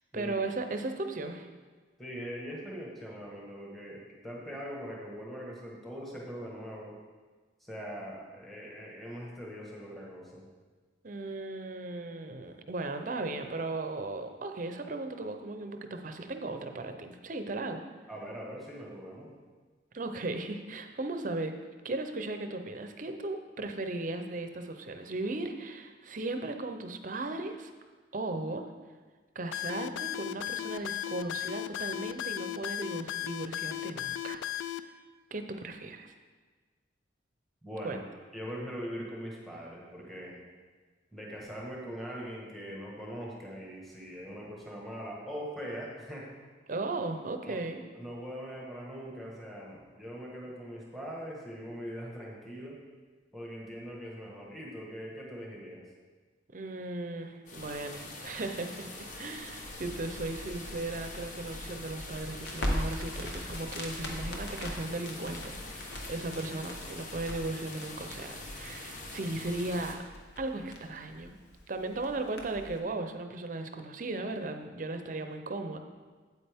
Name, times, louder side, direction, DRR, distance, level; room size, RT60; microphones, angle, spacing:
voice 1, 0.1-1.5 11.0-17.9 19.9-21.6 21.8-27.7 28.1-28.7 29.3-34.4 35.3-36.1 37.8-38.0 46.7-47.8 56.5-70.0 70.4-71.4 71.7-75.8, right 2 dB, 45° right, 6 dB, 0.6 m, -36 dB
voice 2, 2.0-6.9 7.6-10.4 18.1-19.3 37.6-38.0 38.3-40.3 41.1-46.3 47.4-47.6 47.9-52.8 53.3-55.8, equal, ahead, -4 dB, 1.4 m, -41 dB
sound 1, 29.5-34.8, left 12 dB, 85° left, 0.3 m, -35 dB
sound 2, 57.5-69.9, left 2 dB, 40° left, 0.9 m, -43 dB
Crackle, 62.3-72.8, equal, 65° left, 1.1 m, -40 dB
8.6 x 8.3 x 3.5 m, 1.4 s
head